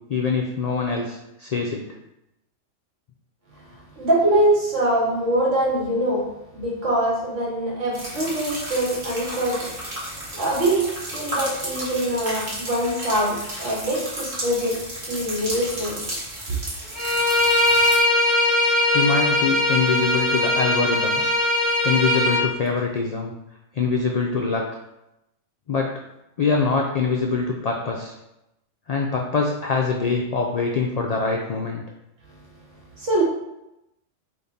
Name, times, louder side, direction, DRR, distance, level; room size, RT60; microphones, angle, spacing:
voice 1, 0.1-1.8 18.9-21.2 21.8-23.3 23.7-24.6 25.7-25.9 26.4-28.1 28.9-31.8, left 4 dB, 80° left, 0 dB, 0.3 m, -24 dB
voice 2, 4.0-6.3 6.5-9.7 10.4-14.8 15.1-16.1 33.0-33.2, right 1 dB, 75° right, -4 dB, 1.7 m, -23 dB
sound 1, 7.9-18.0, right 1 dB, 55° right, 1.6 m, -33 dB
Bowed string instrument, 16.9-22.4, left 2 dB, ahead, 0.8 m, -20 dB
5.2 x 2.5 x 4.0 m, 0.90 s
omnidirectional pair, 1.3 m